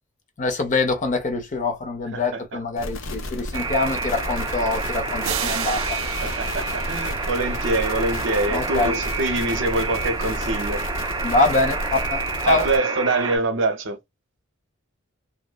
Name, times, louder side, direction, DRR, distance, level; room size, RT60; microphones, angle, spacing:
voice 1, 0.4-6.0 8.5-9.0 11.2-12.6, left 3 dB, 40° left, 0.7 m, -24 dB
voice 2, 2.1-2.6 6.2-10.8 12.4-14.0, right 2 dB, 65° right, 0.7 m, -25 dB
sound 1, 2.8-12.8, left 1 dB, 80° left, 0.6 m, -32 dB
Alarm, 3.5-13.4, right 4 dB, 20° right, 0.4 m, -29 dB
sound 2, 5.2-7.9, right 12 dB, 90° right, 0.3 m, -33 dB
2.6 x 2.1 x 2.3 m
head